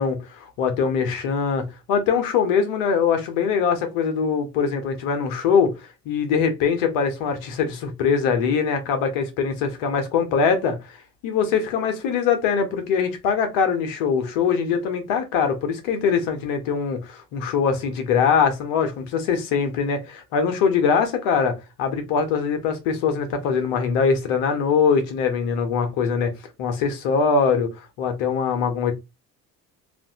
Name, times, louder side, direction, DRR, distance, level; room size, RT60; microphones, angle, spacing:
voice 1, 0.0-5.7 6.0-10.9 11.2-26.3 26.6-28.9, left 6 dB, 65° left, 1.3 m, -22 dB
3.4 x 2.6 x 3.6 m
hypercardioid pair, 65°, 47 cm